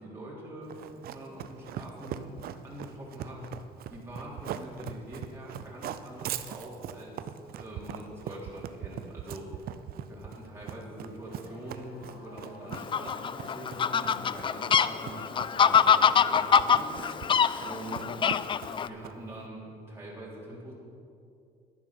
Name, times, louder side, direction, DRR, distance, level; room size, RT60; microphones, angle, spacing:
voice 1, 0.0-3.6 3.9-9.6 10.1-17.3 17.7-18.3 18.6-20.7, right 1 dB, 15° right, -6 dB, 3.3 m, -44 dB
Run, 0.7-19.4, right 10 dB, 65° right, 0.6 m, -41 dB
sound 1, 11.2-18.4, equal, 75° left, 3.2 m, -49 dB
Fowl, 12.7-18.9, left 7 dB, 30° left, 0.3 m, -24 dB
11.0 x 10.5 x 5.9 m, 2.5 s
cardioid pair, 110°, 17 cm